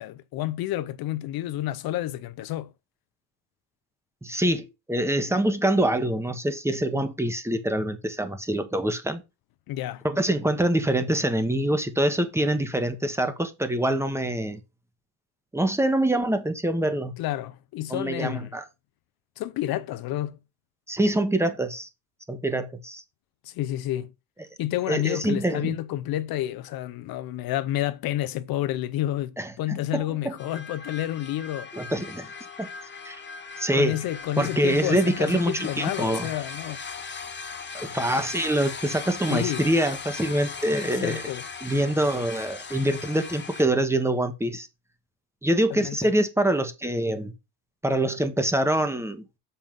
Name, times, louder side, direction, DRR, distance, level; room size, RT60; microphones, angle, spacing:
voice 1, 0.0-2.7 9.7-10.0 17.2-18.5 19.4-20.4 23.4-24.1 24.6-31.7 33.7-36.8 39.3-39.6 40.9-41.4 45.7-46.0, left 14 dB, 65° left, 0.8 m, -30 dB
voice 2, 4.2-9.2 10.0-14.6 15.5-17.1 17.9-18.6 20.9-21.9 22.3-23.0 24.9-25.7 29.4-30.4 31.7-32.3 32.6-32.7 33.0-33.2 33.6-34.0 34.4-36.3 37.7-41.2 41.6-44.7 45.4-47.3 47.8-49.2, right 1 dB, 5° right, 1.3 m, -25 dB
sound 1, 30.4-43.6, left 5 dB, 25° left, 1.8 m, -38 dB
7.3 x 5.6 x 5.3 m
cardioid pair, 125°, 40 cm